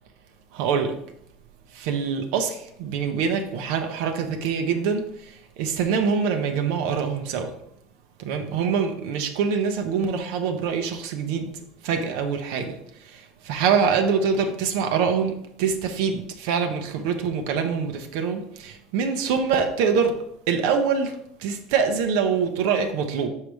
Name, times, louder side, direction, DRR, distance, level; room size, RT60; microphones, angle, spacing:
voice 1, 0.5-0.9 1.7-5.0 5.6-7.5 8.2-11.5 11.8-12.7 13.1-20.2 20.5-23.3, right 6 dB, 60° right, 5 dB, 0.7 m, -24 dB
6.3 x 4.7 x 3.5 m, 0.74 s
cardioid pair, 180°, 0 cm